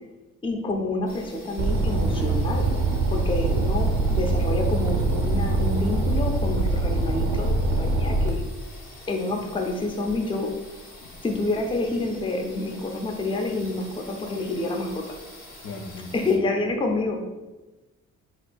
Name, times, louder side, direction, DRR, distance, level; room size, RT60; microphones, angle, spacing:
voice 1, 0.4-2.7 3.1-8.4 9.1-10.5 11.2-15.2 16.1-17.2, left 2 dB, 15° left, 3 dB, 0.5 m, -28 dB
sound 1, 1.1-16.4, left 1 dB, 45° left, 1.4 m, -46 dB
sound 2, 1.6-8.3, right 2 dB, 80° right, 0.6 m, -23 dB
voice 2, 15.6-16.6, left 2 dB, 70° left, 3 dB, 0.6 m, -39 dB
4.3 x 2.7 x 2.2 m, 1.1 s
cardioid pair, 90°, 30 cm